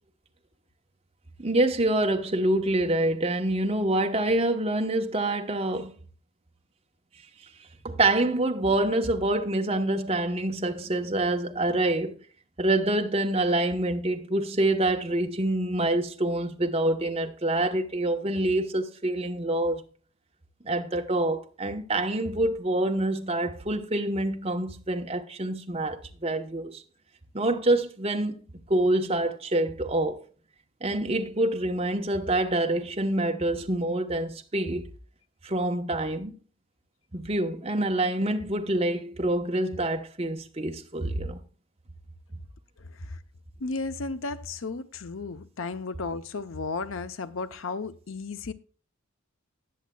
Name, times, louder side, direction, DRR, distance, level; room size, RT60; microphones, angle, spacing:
voice 1, 1.4-5.9 7.8-12.2 12.6-19.8 20.6-26.8 27.3-28.4 28.7-30.2 30.8-34.9 35.4-36.3 37.1-41.4, right 1 dB, 30° right, 1.0 m, -26 dB
voice 2, 42.8-43.2 43.6-48.5, left 3 dB, 75° left, 0.7 m, -34 dB
19.0 x 7.2 x 2.3 m
head